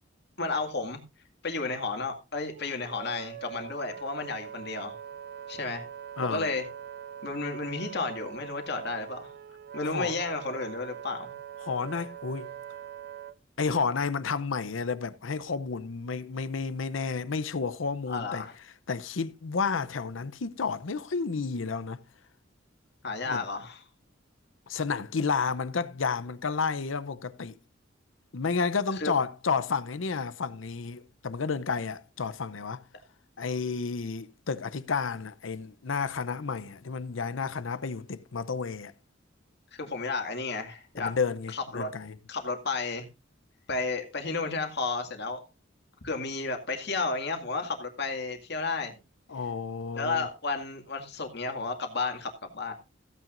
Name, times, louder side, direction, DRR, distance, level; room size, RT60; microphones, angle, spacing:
voice 1, 0.4-1.0 1.4-4.9 5.5-5.8 6.2-6.7 7.2-9.3 9.7-11.3 18.1-18.5 23.0-23.8 28.9-29.1 39.7-41.2 41.5-41.9 42.3-43.0 43.7-45.4 46.0-49.0 50.0-52.7, left 3 dB, 60° left, 2.1 m, -32 dB
Wind instrument woodwind instrument, 2.5-13.4, right 9 dB, 55° right, 0.4 m, -43 dB
voice 2, 6.2-6.5 9.8-10.2 11.6-12.5 13.6-18.5 18.9-22.0 23.3-23.4 24.7-27.6 28.3-32.8 33.4-38.9 41.0-42.2 49.3-50.3, left 5 dB, 75° left, 0.7 m, -31 dB
15.5 x 9.0 x 2.5 m
head